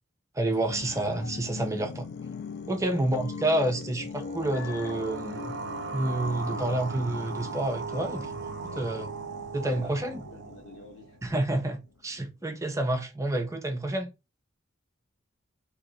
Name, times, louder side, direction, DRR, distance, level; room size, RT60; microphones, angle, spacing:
voice 1, 0.3-2.1 2.7-5.6 5.9-8.3 8.6-9.1 9.5-10.2 11.2-14.1, right 1 dB, 15° right, 0.6 m, -29 dB
sound 1, 0.7-11.7 12.1-12.2, left 5 dB, 55° left, 0.3 m, -42 dB
sound 2, 4.0-11.4, right 4 dB, 60° right, 0.5 m, -38 dB
voice 2, 7.9-8.2 8.6-8.9 9.6-11.2, left 2 dB, 80° left, 0.7 m, -48 dB
3.0 x 2.8 x 3.8 m
head